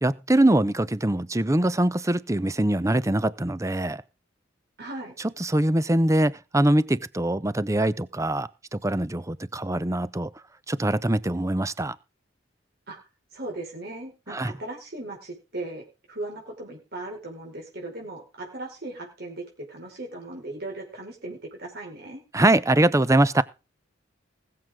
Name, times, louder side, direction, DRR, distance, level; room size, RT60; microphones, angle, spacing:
voice 1, 0.0-4.0 5.2-10.3 10.7-12.0 14.3-14.5 22.3-23.4, right 1 dB, 15° right, 0.7 m, -23 dB
voice 2, 4.8-5.1 12.9-13.0 13.3-22.2, right 2 dB, 55° right, 4.8 m, -38 dB
20.0 x 7.8 x 3.6 m
head